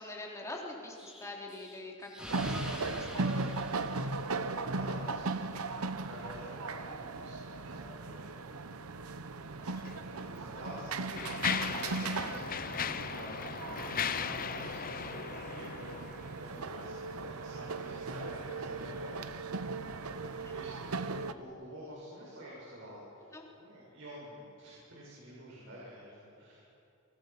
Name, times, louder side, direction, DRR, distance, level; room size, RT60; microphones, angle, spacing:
voice 1, 0.0-2.5 3.0-3.5 3.8-4.0 12.1-12.4 13.2-13.4 20.4-20.6 23.3-23.5, left 2 dB, 15° left, -2 dB, 3.9 m, -45 dB
Explosion, 1.0-4.8, equal, 5° right, 4.2 m, -45 dB
voice 2, 2.2-2.5 4.1-8.7 9.0-15.9 16.3-20.1 20.5-23.3 23.6-26.6, equal, 60° right, -6 dB, 7.2 m, -49 dB
sound 1, 2.3-21.3, right 3 dB, 80° right, 0.9 m, -38 dB
Mechanisms, 9.8-9.9 10.6-16.4, left 7 dB, 40° left, 0.7 m, -37 dB
29.0 x 23.0 x 6.1 m, 2.7 s
head